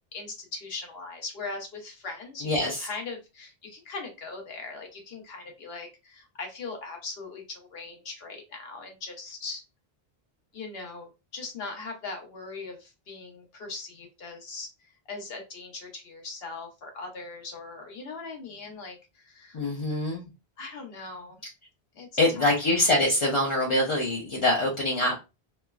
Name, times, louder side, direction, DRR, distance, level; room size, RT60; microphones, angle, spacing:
voice 1, 0.1-9.6 10.5-19.7 20.6-21.4 21.9-22.1 22.3-22.5, left 3 dB, 70° left, 3 dB, 1.0 m, -40 dB
voice 2, 2.4-2.9 19.5-20.3 22.2-25.1, left 1 dB, 40° left, -1 dB, 0.4 m, -24 dB
3.1 x 2.0 x 2.3 m, 0.27 s
omnidirectional pair, 1.1 m